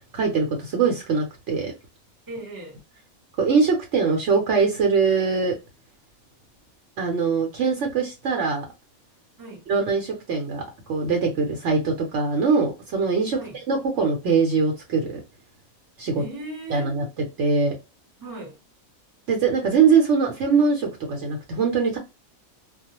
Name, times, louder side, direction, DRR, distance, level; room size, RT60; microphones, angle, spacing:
voice 1, 0.1-1.7 3.4-5.5 7.0-8.6 9.7-10.6 10.9-13.4 13.7-15.1 16.0-16.2 16.7-17.0 17.4-17.7 19.3-22.0, right 5 dB, 60° right, 0.9 m, -22 dB
voice 2, 2.3-2.8 9.4-9.7 13.3-13.6 16.1-16.9 18.2-18.6, right 2 dB, 15° right, 0.8 m, -37 dB
2.3 x 2.1 x 2.8 m
omnidirectional pair, 1.5 m